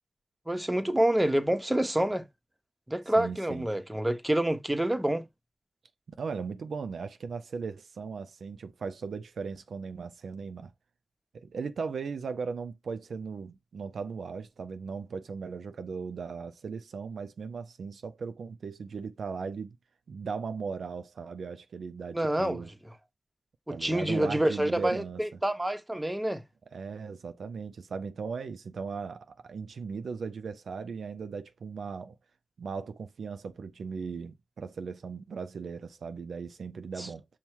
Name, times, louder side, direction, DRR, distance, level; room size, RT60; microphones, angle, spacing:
voice 1, 0.5-2.2 2.9-5.2 22.1-22.6 23.7-26.4 37.0-37.1, right 1 dB, 15° right, 0.9 m, -27 dB
voice 2, 3.2-3.7 6.2-10.7 11.3-19.8 20.1-22.7 23.7-25.4 26.7-32.2 32.6-37.3, right 5 dB, 85° right, 0.4 m, -38 dB
5.4 x 2.1 x 4.5 m
cardioid pair, 40°, 0 cm